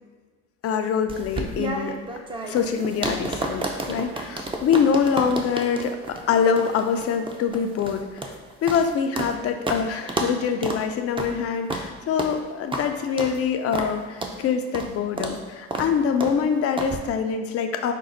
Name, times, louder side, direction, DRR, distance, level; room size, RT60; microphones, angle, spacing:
voice 1, 0.6-2.0 2.5-8.3 8.6-17.9, left 6 dB, 50° left, 6 dB, 0.5 m, -24 dB
sound 1, 1.1-9.4 9.7-9.8 10.1-10.3 10.6-10.8 11.2-11.3 11.7-11.9 12.2-12.3 12.7-12.9 13.2-13.4 13.7-13.9 14.2-14.4 14.7-14.9 15.2-15.4 15.7-15.9 16.2-16.4 16.8-17.0, right 2 dB, 15° right, 0.6 m, -30 dB
5.3 x 2.0 x 3.8 m, 1.5 s
supercardioid pair, 75°, 30 cm